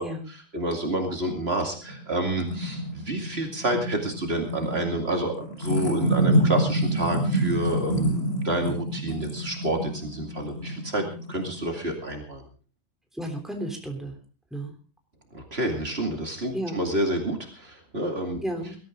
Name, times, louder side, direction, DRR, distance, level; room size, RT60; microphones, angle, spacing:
voice 1, 0.0-12.4 15.3-18.4, right 1 dB, 50° right, 3 dB, 2.7 m, -29 dB
sound 1, 1.9-12.0, right 1 dB, 50° left, 5.5 m, -27 dB
voice 2, 13.1-14.2 14.5-14.7 16.5-16.7 18.4-18.8, right 1 dB, ahead, 3 dB, 3.3 m, -32 dB
20.5 x 13.5 x 3.8 m, 0.36 s
omnidirectional pair, 1.4 m